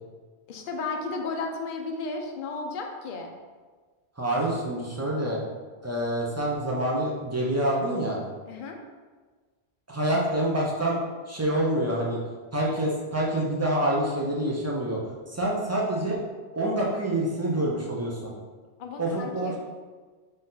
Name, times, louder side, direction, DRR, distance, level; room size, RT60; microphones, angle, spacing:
voice 1, 0.5-3.3 8.5-8.8 18.8-19.6, left 3 dB, 60° left, 3 dB, 0.6 m, -33 dB
voice 2, 4.2-5.4 5.8-8.2 9.9-11.0 11.3-12.2 12.5-15.0 15.3-16.2 16.5-18.2 19.0-19.6, right 1 dB, 20° right, -4 dB, 0.4 m, -26 dB
4.3 x 2.5 x 3.8 m, 1.4 s
omnidirectional pair, 1.2 m